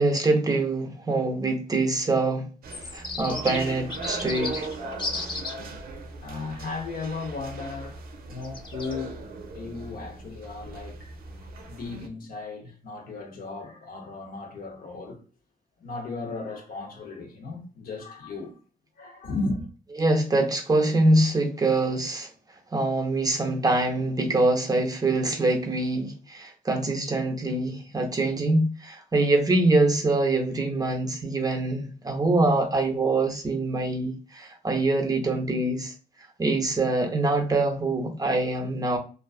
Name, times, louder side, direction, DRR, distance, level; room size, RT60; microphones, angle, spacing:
voice 1, 0.0-2.5 2.9-4.7 20.0-22.3 22.7-35.9 36.4-39.0, right 2 dB, 25° right, 0.5 m, -24 dB
sound 1, 2.6-12.1, right 3 dB, 90° right, 0.5 m, -38 dB
sound 2, 2.7-5.6 8.4-8.9, left 3 dB, 30° left, 0.5 m, -34 dB
voice 2, 6.2-9.3 9.5-15.2 15.8-18.6 19.0-19.7, left 3 dB, 80° left, 0.7 m, -36 dB
2.4 x 2.3 x 2.3 m
cardioid pair, 115°, 15 cm